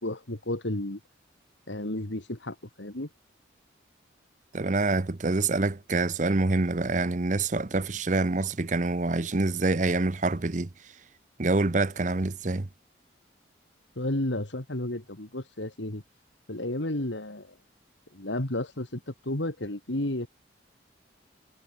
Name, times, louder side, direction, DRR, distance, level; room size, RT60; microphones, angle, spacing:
voice 1, 0.0-1.0 1.7-3.1 14.0-16.0 16.5-17.5 18.1-20.3, left 1 dB, 75° left, 2.6 m, -32 dB
voice 2, 4.5-10.7 11.4-12.7, right 3 dB, 40° right, 0.8 m, -26 dB
head